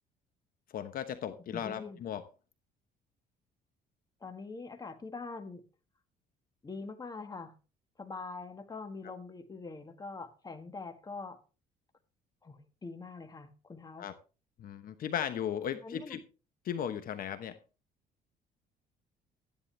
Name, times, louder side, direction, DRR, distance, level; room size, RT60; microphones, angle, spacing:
voice 1, 0.7-2.2 14.0-14.1 14.6-16.2 16.6-17.6, left 9 dB, 55° left, 1.1 m, -36 dB
voice 2, 1.5-2.0 4.2-5.6 6.6-7.6 8.0-11.4 12.4-14.1 15.8-16.2, left 4 dB, 20° left, 1.6 m, -44 dB
12.5 x 10.5 x 3.4 m
cardioid pair, 110°, 17 cm